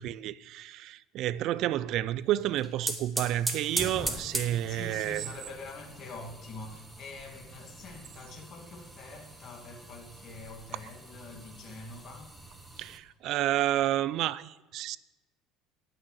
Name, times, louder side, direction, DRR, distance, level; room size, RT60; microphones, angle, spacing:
voice 1, 0.0-5.2 12.8-15.0, right 13 dB, 50° right, 0.4 m, -30 dB
sound 1, 2.4-13.0, right 2 dB, 5° right, 1.0 m, -40 dB
voice 2, 4.7-12.4, left 3 dB, 35° left, 1.8 m, -45 dB
18.0 x 6.1 x 6.4 m
cardioid pair, 165°, 0 cm